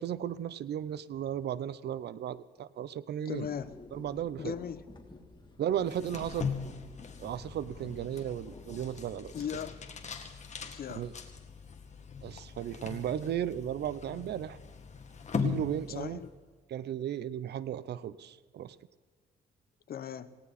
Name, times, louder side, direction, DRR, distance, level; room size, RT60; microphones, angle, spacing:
voice 1, 0.0-3.5 3.9-4.5 5.6-6.5 7.2-9.3 10.9-11.1 12.2-14.6 15.4-16.2 16.7-18.8, right 10 dB, 70° right, 18 dB, 0.7 m, -35 dB
voice 2, 3.2-3.7 4.4-4.8 9.3-9.8 10.7-11.0 15.9-16.3 19.9-20.3, left 8 dB, 60° left, 12 dB, 1.0 m, -38 dB
sound 1, 3.3-9.8, left 2 dB, 25° left, 2.8 m, -52 dB
sound 2, 5.8-16.4, left 5 dB, 40° left, 1.9 m, -40 dB
18.5 x 18.0 x 4.2 m, 1.5 s
cardioid pair, 90°, 18 cm